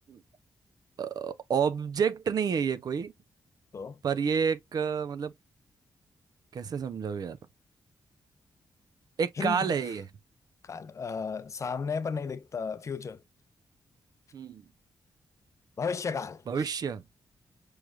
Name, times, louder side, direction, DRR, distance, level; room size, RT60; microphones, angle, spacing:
voice 1, 1.0-3.1 4.0-5.3 6.5-7.4 9.2-10.1 14.3-14.6 16.5-17.0, right 6 dB, 60° right, 0.5 m, -29 dB
voice 2, 9.4-9.7 10.6-13.2 15.8-16.4, left 5 dB, 45° left, 0.5 m, -34 dB
4.7 x 3.2 x 2.3 m
cardioid pair, 90°, 8 cm